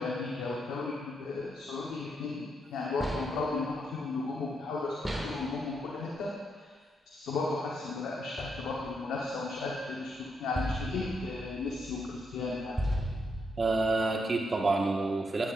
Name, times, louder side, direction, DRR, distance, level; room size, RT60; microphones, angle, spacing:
voice 1, 0.0-6.3 7.1-10.1 10.4-12.8, left 3 dB, 80° left, -4 dB, 1.1 m, -35 dB
sound 1, 3.0-3.6 5.0-5.6 8.4-9.0 10.5-14.0, equal, 15° right, 2.1 m, -36 dB
voice 2, 13.6-15.5, right 3 dB, 45° right, 1 dB, 1.5 m, -28 dB
13.5 x 8.5 x 2.6 m, 1.5 s
supercardioid pair, 45°, 0 cm